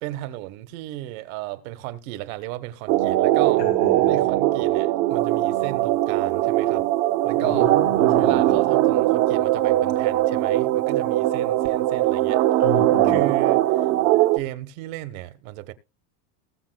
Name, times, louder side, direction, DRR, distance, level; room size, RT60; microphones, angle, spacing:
voice 1, 0.0-3.6 4.1-6.8 7.2-7.7 8.1-12.4 13.0-13.6 14.3-15.7, right 16 dB, 55° right, 1.5 m, -34 dB
sound 1, 2.9-14.4, right 15 dB, 40° right, 1.1 m, -20 dB
voice 2, 3.6-4.2 7.4-8.6 12.6-13.3, left 5 dB, 85° left, 1.9 m, -32 dB
20.0 x 7.4 x 2.3 m
supercardioid pair, 165°, 49 cm